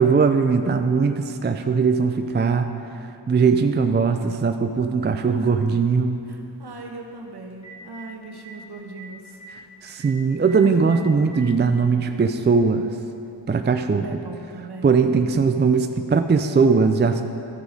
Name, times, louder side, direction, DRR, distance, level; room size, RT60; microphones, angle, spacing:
voice 1, 0.0-2.7 3.3-6.2 9.8-12.8 13.5-14.1 14.8-17.2, right 5 dB, 25° right, 7 dB, 0.4 m, -20 dB
Telephone, 4.8-4.9 7.1-7.2 7.5-8.0 8.4-8.5 8.9-9.1 9.3-9.5 10.0-10.1 10.5-10.6 10.9-11.4 12.4-12.5 14.0-14.1, right 6 dB, 40° left, 2.1 m, -43 dB
voice 2, 5.0-5.5 6.2-9.4 10.4-10.9 14.0-15.0, right 3 dB, 60° right, 1 dB, 1.3 m, -39 dB
13.5 x 4.8 x 5.2 m, 2.7 s
cardioid pair, 55°, 44 cm